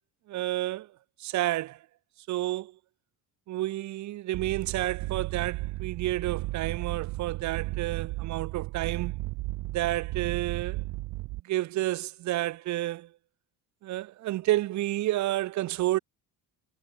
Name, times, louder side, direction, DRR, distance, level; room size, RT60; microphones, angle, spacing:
voice 1, 0.3-0.9 1.2-1.8 2.3-2.7 3.5-9.2 9.7-10.8 11.4-13.1 13.8-16.0, right 15 dB, 55° right, 4.7 m, -30 dB
sound 1, 4.3-11.4, right 22 dB, 75° right, 3.9 m, -34 dB
cardioid pair, 165°, 35 cm